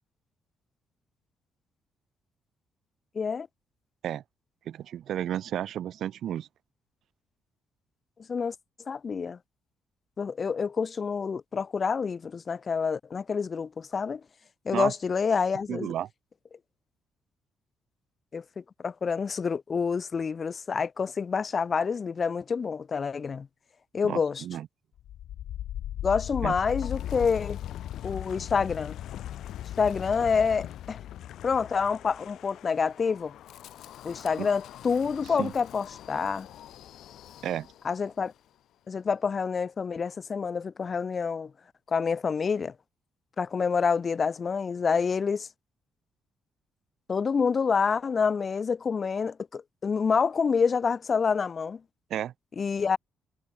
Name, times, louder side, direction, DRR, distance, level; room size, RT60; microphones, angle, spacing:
voice 1, 3.1-3.5 8.3-8.5 8.9-9.4 10.2-14.2 14.7-15.9 18.3-23.5 23.9-24.4 26.0-27.6 28.0-29.0 29.8-31.0 31.4-33.3 34.0-36.5 37.8-38.3 38.9-41.5 41.9-42.7 43.4-45.5 47.1-51.8 52.6-53.0, left 5 dB, 40° left, 2.4 m, -27 dB
voice 2, 4.7-6.5 14.7-14.9 15.7-16.1 24.0-24.7 26.4-26.5 34.4-34.5 35.4-35.5 37.4-37.7 52.1-52.3, right 10 dB, 70° right, 1.0 m, -32 dB
Wind, 25.0-38.0, left 12 dB, 75° left, 6.3 m, -39 dB
cardioid pair, 90°, 0 cm